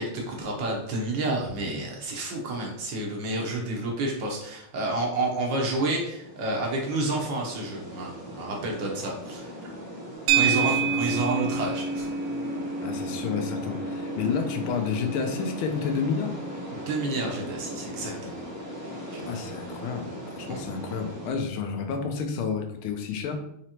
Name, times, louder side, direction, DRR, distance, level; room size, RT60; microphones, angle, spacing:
voice 1, 0.0-9.5 10.3-12.1 16.7-18.4 19.1-19.4 20.5-20.6, right 2 dB, 65° right, 0 dB, 1.5 m, -30 dB
sound 1, 5.8-21.3, equal, 25° right, 0.4 m, -39 dB
sound 2, 10.3-18.7, right 6 dB, 90° right, 1.4 m, -30 dB
voice 2, 10.4-11.1 12.8-16.4 19.3-23.3, left 6 dB, 80° left, 5 dB, 1.5 m, -30 dB
4.9 x 3.1 x 2.9 m, 0.76 s
omnidirectional pair, 2.3 m